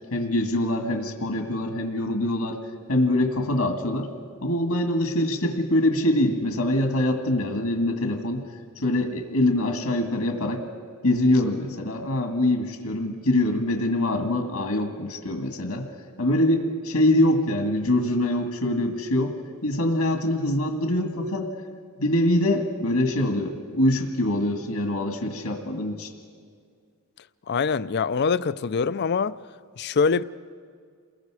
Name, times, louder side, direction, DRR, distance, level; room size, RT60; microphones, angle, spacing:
voice 1, 0.1-2.6 2.9-4.1 4.4-8.4 8.8-10.6 11.0-15.9 16.2-19.3 19.6-21.5 22.0-26.1, left 1 dB, 80° left, 1.9 m, -24 dB
voice 2, 27.5-29.4 29.8-30.2, left 5 dB, 50° left, 0.4 m, -24 dB
29.0 x 21.5 x 4.9 m
head